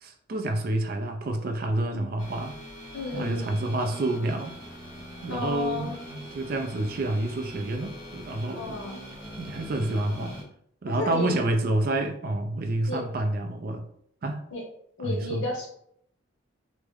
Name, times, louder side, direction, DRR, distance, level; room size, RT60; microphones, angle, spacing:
voice 1, 0.0-2.6 3.1-4.5 5.2-8.8 9.4-10.4 10.8-13.9 14.2-14.4 15.0-15.5, right 1 dB, 45° right, 0.4 m, -28 dB
sound 1, 2.2-10.4, equal, 40° left, 1.3 m, -42 dB
voice 2, 2.9-3.5 5.3-6.0 8.5-9.0 10.9-11.4 12.9-13.0 14.5-14.6 15.0-15.7, left 2 dB, 75° left, 1.1 m, -32 dB
3.4 x 2.1 x 3.3 m
head